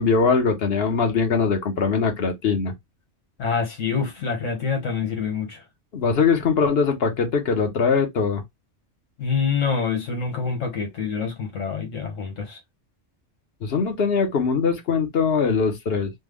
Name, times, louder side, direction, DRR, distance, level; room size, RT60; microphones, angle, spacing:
voice 1, 0.0-2.7 5.9-8.4 13.6-16.1, left 5 dB, 55° left, 1.0 m, -21 dB
voice 2, 3.4-5.6 9.2-12.6, left 5 dB, 85° left, 1.3 m, -26 dB
3.4 x 2.0 x 3.4 m
omnidirectional pair, 1.3 m